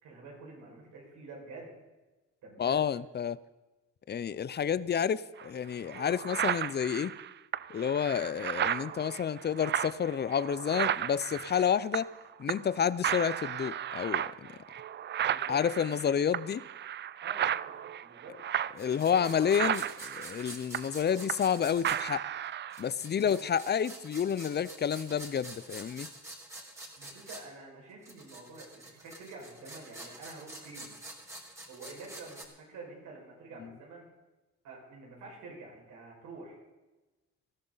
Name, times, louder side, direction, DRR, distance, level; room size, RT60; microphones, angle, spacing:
voice 1, 0.0-1.8 2.4-2.9 15.2-15.6 17.2-18.3 23.1-23.4 27.0-30.9 31.7-34.1 34.6-36.6, right 3 dB, 85° right, -2 dB, 5.5 m, -48 dB
voice 2, 2.6-3.4 4.1-7.1 7.7-12.1 12.4-14.5 15.5-16.6 18.8-22.3 22.8-26.1, left 8 dB, 35° left, 18 dB, 0.5 m, -30 dB
sound 1, 5.4-5.5 5.9-12.2 12.5-12.8 13.0-21.6 21.8-22.9, right 10 dB, 40° right, 0.4 m, -34 dB
sound 2, 18.8-22.0 22.7-27.4 28.0-32.5, right 1 dB, 10° right, 3.3 m, -47 dB
19.0 x 13.5 x 4.0 m, 1.1 s
cardioid pair, 90°, 30 cm